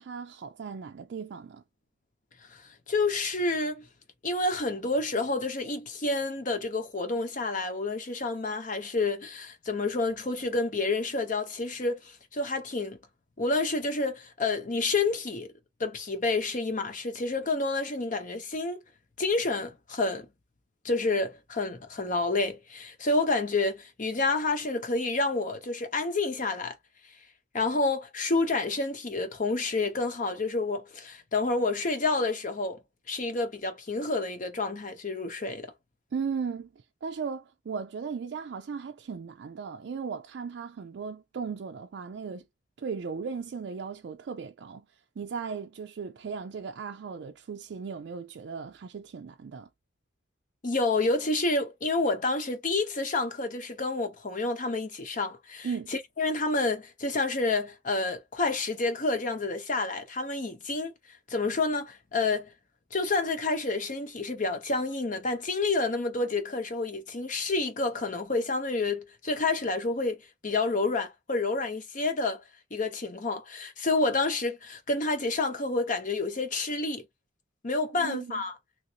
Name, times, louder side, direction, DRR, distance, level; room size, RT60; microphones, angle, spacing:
voice 1, 0.0-1.6 36.1-42.4 42.8-49.7 55.6-55.9 77.9-78.4, right 5 dB, 65° right, 0.4 m, -37 dB
voice 2, 2.5-3.9 4.2-13.0 13.4-15.5 15.8-18.8 19.2-20.3 20.8-26.8 27.5-32.8 33.1-35.7 50.6-62.5 62.9-72.4 72.7-77.0 77.6-78.5, left 3 dB, 45° left, 0.9 m, -29 dB
3.1 x 2.5 x 2.8 m
head